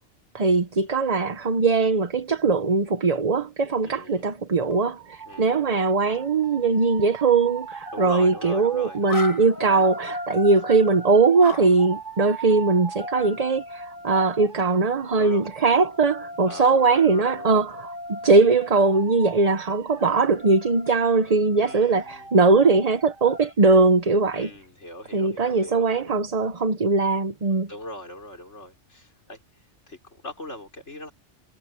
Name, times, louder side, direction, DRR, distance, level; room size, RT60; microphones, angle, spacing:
voice 1, 0.3-24.5 25.1-27.7, right 4 dB, 35° right, 0.9 m, -20 dB
voice 2, 3.8-4.3 5.3-5.6 7.9-9.3 9.7-9.9 14.6-14.9 15.2-15.5 16.5-17.6 21.6-22.3 24.3-26.2 27.7-29.4 29.9-31.1, left 1 dB, 75° left, 5.4 m, -40 dB
sound 1, 4.6-23.5, right 1 dB, 45° left, 5.0 m, -38 dB
omnidirectional pair, 1.2 m